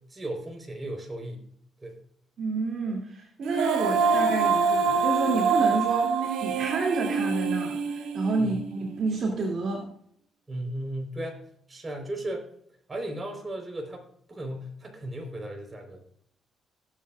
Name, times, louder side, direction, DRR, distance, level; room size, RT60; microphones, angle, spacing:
voice 1, 0.0-1.4 1.8-2.0 8.4-8.5 10.5-11.4 11.7-12.5 12.9-16.0, right 1 dB, 25° right, 1 dB, 4.1 m, -36 dB
voice 2, 2.4-9.8, right 3 dB, 55° right, 0 dB, 2.6 m, -29 dB
Female singing, 3.4-8.6, right 5 dB, 90° right, 1.4 m, -25 dB
17.0 x 8.5 x 2.5 m, 0.64 s
cardioid pair, 90°, 0 cm